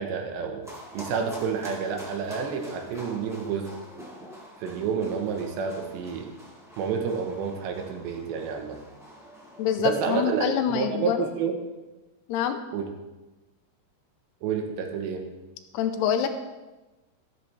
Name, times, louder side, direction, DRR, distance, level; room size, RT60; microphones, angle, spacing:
voice 1, 0.0-3.7 4.6-6.3 6.8-8.8 9.8-11.6 12.7-12.9 14.4-15.2, right 6 dB, 85° right, 3 dB, 3.5 m, -29 dB
sound 1, 0.6-9.7, equal, ahead, 0.9 m, -46 dB
voice 2, 9.6-11.3 12.3-12.6 15.7-16.3, left 8 dB, 80° left, 8 dB, 2.6 m, -26 dB
13.0 x 12.5 x 3.4 m, 1.1 s
omnidirectional pair, 5.0 m